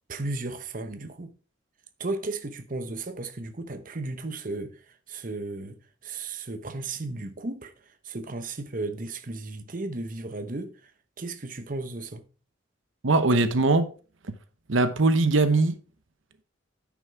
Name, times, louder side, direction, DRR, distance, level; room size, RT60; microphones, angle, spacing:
voice 1, 0.1-1.3 2.0-4.7 5.1-5.8 6.0-7.7 8.0-10.7 11.2-12.2, right 2 dB, 45° right, 0.9 m, -34 dB
voice 2, 13.0-13.9 14.7-15.7, right 3 dB, 75° right, 0.9 m, -21 dB
9.6 x 6.0 x 4.5 m
head